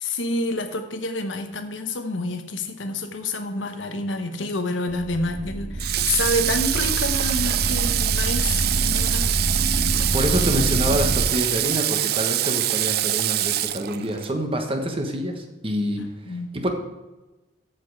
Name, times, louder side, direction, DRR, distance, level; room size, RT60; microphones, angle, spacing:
voice 1, 0.0-9.3 16.0-16.5, left 2 dB, 85° left, 7 dB, 1.0 m, -28 dB
sound 1, 4.9-11.2, right 1 dB, 85° right, 1.6 m, -26 dB
Water / Water tap faucet, 5.8-14.3, right 13 dB, 55° right, 0.4 m, -24 dB
voice 2, 10.1-16.0 16.5-16.7, equal, 30° right, 4 dB, 1.3 m, -26 dB
13.5 x 5.3 x 4.8 m, 1.1 s
head